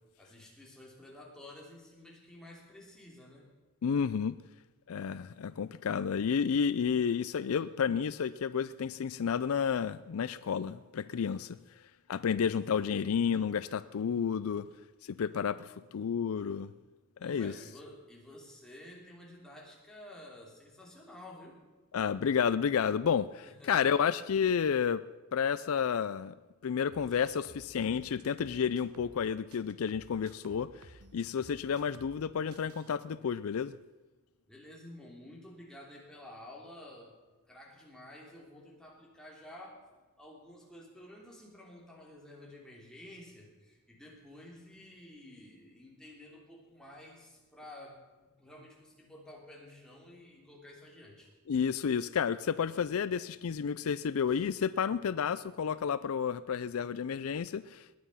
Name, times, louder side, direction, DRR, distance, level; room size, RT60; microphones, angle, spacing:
voice 1, 0.2-3.5 17.2-21.6 23.4-23.8 27.1-27.2 34.5-37.1 37.5-39.8 40.2-51.3 54.3-54.5, left 1 dB, 5° left, -2 dB, 3.1 m, -51 dB
voice 2, 3.8-4.4 4.9-11.6 12.1-14.7 15.0-16.7 17.2-17.5 21.9-25.0 25.3-26.3 26.6-30.9 31.1-33.7 51.5-58.0, left 7 dB, 65° left, 16 dB, 0.4 m, -31 dB
sound 1, 26.9-29.2 29.5-32.2 32.5-32.9, right 2 dB, 85° right, 1.4 m, -56 dB
20.0 x 9.5 x 5.6 m, 1.2 s
head